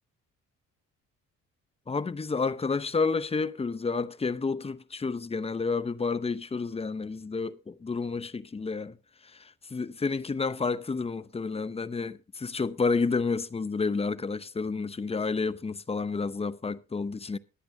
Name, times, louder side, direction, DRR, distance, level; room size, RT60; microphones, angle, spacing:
voice 1, 1.9-9.0 9.7-17.4, left 4 dB, 20° left, 0.7 m, -30 dB
21.0 x 8.6 x 2.7 m
cardioid pair, 90°, 30 cm